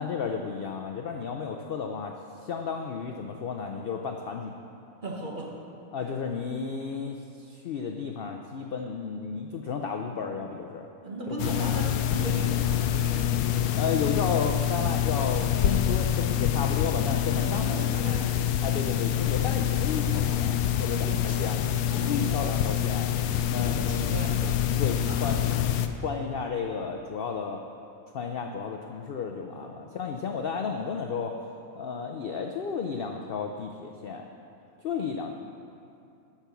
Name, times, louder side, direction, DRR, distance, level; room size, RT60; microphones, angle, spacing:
voice 1, 0.0-4.5 5.9-10.9 11.3-11.4 13.8-17.8 18.6-21.7 22.0-23.1 23.5-24.1 24.8-25.4 25.9-27.6 28.1-31.4 31.7-34.3 34.8-35.3, left 5 dB, 60° left, 4 dB, 0.6 m, -33 dB
voice 2, 5.0-5.5 6.0-6.1 11.0-13.3 17.3-18.3 20.9-21.5 21.9-22.5 23.5-25.2 29.5-29.7, right 1 dB, 35° right, -1 dB, 1.3 m, -37 dB
sound 1, 11.4-25.9, left 10 dB, 85° left, 1.0 m, -26 dB
10.5 x 5.8 x 6.9 m, 2.7 s
omnidirectional pair, 1.5 m